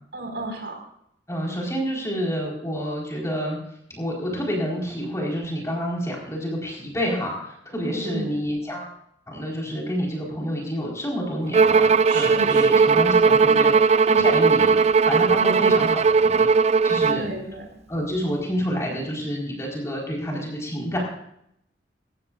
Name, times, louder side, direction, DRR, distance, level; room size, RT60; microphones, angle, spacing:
voice 1, 0.1-0.8 7.7-8.4 12.1-12.9 13.4-13.7 14.2-14.3 17.0-17.7, right 1 dB, 70° right, 3 dB, 5.1 m, -34 dB
voice 2, 1.3-3.6 4.0-8.9 9.3-14.8 15.1-16.5 16.8-17.3 17.9-21.0, equal, 15° left, -2 dB, 4.4 m, -28 dB
Bowed string instrument, 11.5-17.3, right 5 dB, 40° right, 0.4 m, -18 dB
19.0 x 15.0 x 2.5 m, 0.73 s
head